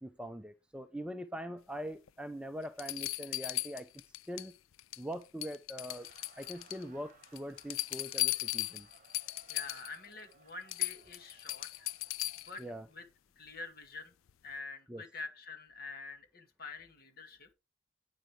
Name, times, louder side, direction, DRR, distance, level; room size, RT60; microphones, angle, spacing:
voice 1, 0.0-3.9 4.3-4.5 5.0-6.1 6.4-8.9 12.6-12.9 14.9-15.0, equal, 5° right, 0.6 m, -42 dB
sound 1, 2.1-2.2 2.8-4.5 4.8-5.1 5.4-6.8 7.2-10.0 10.3-10.4 10.7-12.6 14.3-14.4, left 17 dB, 85° left, 0.4 m, -37 dB
Laughter, 5.8-12.5, right 5 dB, 40° right, 1.2 m, -64 dB
voice 2, 9.5-11.9 12.5-12.6 12.9-13.1 13.4-14.1 14.4-17.5, left 3 dB, 50° left, 2.2 m, -46 dB
9.4 x 9.3 x 3.3 m
head